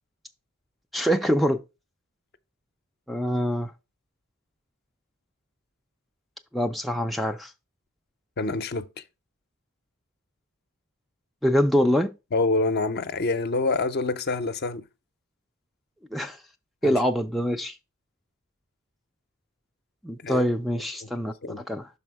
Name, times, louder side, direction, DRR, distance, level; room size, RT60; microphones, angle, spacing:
voice 1, 0.9-1.6 3.1-3.7 6.5-7.5 11.4-12.1 16.1-16.4 16.8-17.8 20.0-21.9, equal, ahead, 0.3 m, -24 dB
voice 2, 8.4-8.9 12.3-14.8 16.8-17.0 20.2-20.4 21.0-21.1 21.4-21.6, left 3 dB, 50° left, 0.6 m, -26 dB
6.1 x 4.2 x 4.6 m
head